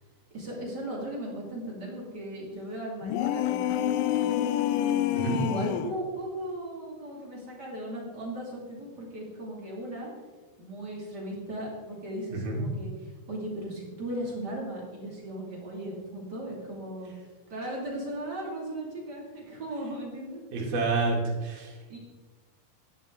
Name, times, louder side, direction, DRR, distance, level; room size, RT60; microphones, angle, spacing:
voice 1, 0.3-4.5 5.1-10.1 10.6-17.1 17.5-20.4 21.9-22.0, right 1 dB, 35° right, -3 dB, 1.9 m, -37 dB
sound 1, 3.0-6.0, left 12 dB, 85° left, 2.4 m, -27 dB
voice 2, 12.3-12.6 20.5-21.8, right 3 dB, 55° right, -3 dB, 3.9 m, -29 dB
12.0 x 11.0 x 3.7 m, 1.3 s
omnidirectional pair, 5.4 m